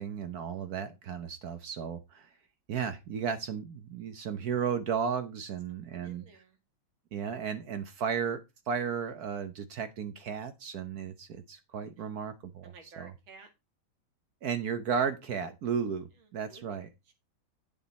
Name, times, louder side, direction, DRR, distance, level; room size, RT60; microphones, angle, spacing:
voice 1, 0.0-2.3 2.7-6.2 7.1-13.1 14.4-16.9, right 7 dB, 60° right, 10 dB, 1.2 m, -34 dB
voice 2, 5.9-6.6 12.0-12.1 12.6-13.5 16.2-16.8 17.1-17.2, right 4 dB, 80° right, 5 dB, 2.8 m, -54 dB
9.2 x 7.0 x 4.2 m, 0.25 s
omnidirectional pair, 2.2 m